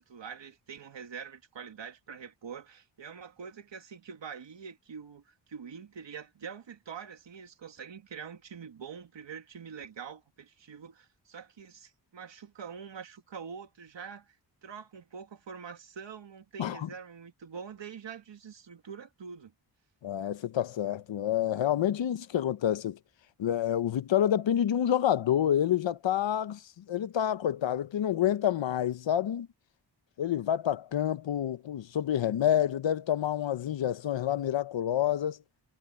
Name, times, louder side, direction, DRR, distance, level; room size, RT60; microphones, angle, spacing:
voice 1, 0.0-14.4 14.6-19.5, right 6 dB, 80° right, 2.2 m, -45 dB
voice 2, 20.0-23.0 23.4-26.6 26.9-29.5 30.2-35.4, left 10 dB, 85° left, 0.8 m, -28 dB
wide cardioid pair, 145°, 44 cm